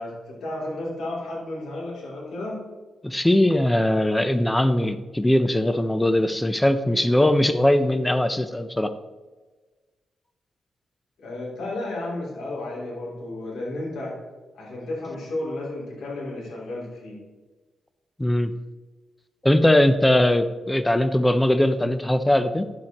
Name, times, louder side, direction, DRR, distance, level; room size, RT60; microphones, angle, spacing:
voice 1, 0.0-2.6 11.2-14.2 14.5-17.2, left 2 dB, 80° left, -4 dB, 2.9 m, -32 dB
voice 2, 3.0-8.9 18.2-18.5 19.4-22.7, left 1 dB, 10° left, 10 dB, 0.6 m, -20 dB
10.5 x 7.6 x 3.0 m, 1.3 s
cardioid pair, 85°, 0 cm